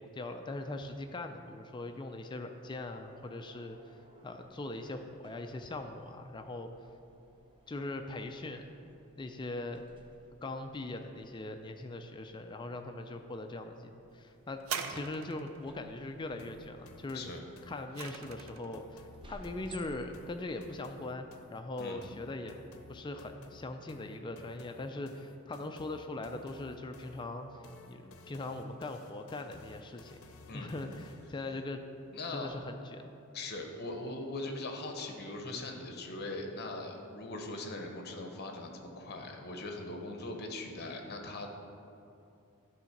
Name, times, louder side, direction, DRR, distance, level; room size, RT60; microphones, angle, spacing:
voice 1, 0.0-6.7 7.7-8.7 9.2-9.8 10.4-14.6 14.9-17.3 17.7-22.6 22.9-30.2 30.5-31.8 32.3-33.1, left 2 dB, 20° left, 6 dB, 0.3 m, -41 dB
sound 1, 2.6-21.5, right 1 dB, 25° right, 0.7 m, -59 dB
sound 2, 14.6-15.7 17.4-18.7 19.5-19.6, right 6 dB, 65° right, 0.5 m, -40 dB
sound 3, 16.4-31.4, left 3 dB, 70° left, 0.7 m, -56 dB
voice 2, 32.1-32.5 33.3-41.5, left 2 dB, 50° left, 3 dB, 1.0 m, -40 dB
11.0 x 3.9 x 5.8 m, 2.8 s
head